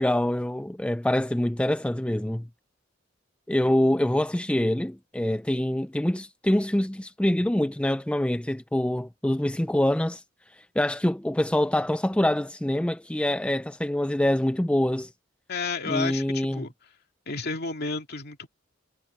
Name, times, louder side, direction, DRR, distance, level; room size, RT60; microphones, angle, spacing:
voice 1, 0.0-2.5 3.5-10.2 10.8-15.1 15.9-16.7, left 1 dB, 5° left, 0.4 m, -25 dB
voice 2, 15.5-16.7 17.3-18.5, left 4 dB, 55° left, 2.4 m, -31 dB
head